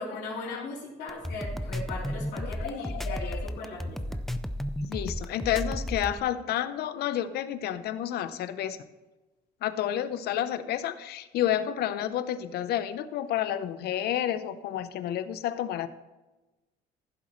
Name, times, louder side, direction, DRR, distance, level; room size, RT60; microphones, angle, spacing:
voice 1, 0.0-4.2, left 2 dB, 85° left, -6 dB, 3.4 m, -38 dB
sound 1, 1.1-6.2, equal, ahead, 0.5 m, -33 dB
voice 2, 2.4-3.5 4.8-8.8 9.6-15.9, left 11 dB, 70° left, 13 dB, 0.7 m, -30 dB
15.5 x 7.3 x 3.1 m, 1.1 s
cardioid pair, 110°, 17 cm